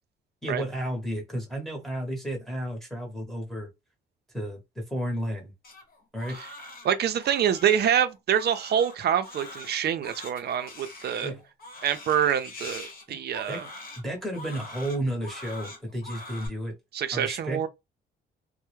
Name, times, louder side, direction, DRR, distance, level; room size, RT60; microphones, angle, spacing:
voice 1, 0.4-3.7 4.3-5.5 6.1-6.4 11.2-11.4 13.1-13.2 13.5-13.6 14.0-16.7 17.1-17.7, right 1 dB, ahead, 0.8 m, -32 dB
Crying sobbing, 5.6-16.5, left 2 dB, 45° left, 1.1 m, -44 dB
voice 2, 6.8-11.3 11.8-13.6 16.9-17.7, right 9 dB, 55° right, 0.4 m, -26 dB
2.2 x 2.0 x 3.0 m
cardioid pair, 90°, 20 cm